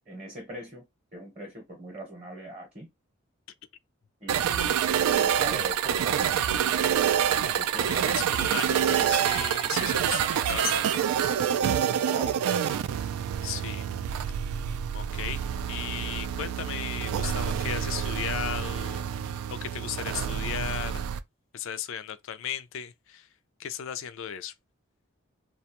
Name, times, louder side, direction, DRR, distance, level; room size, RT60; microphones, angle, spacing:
voice 1, 0.1-0.8 1.1-2.9 4.2-4.8 5.1-6.3 7.4-8.3 8.7-9.1 12.1-12.4, right 1 dB, 30° right, 0.7 m, -40 dB
sound 1, 4.3-21.2, right 9 dB, 85° right, 0.3 m, -27 dB
voice 2, 7.8-11.0 13.4-13.9 14.3-14.4 14.9-21.1 21.5-23.3 23.6-24.5, left 9 dB, 65° left, 0.3 m, -36 dB
2.4 x 2.2 x 2.9 m
head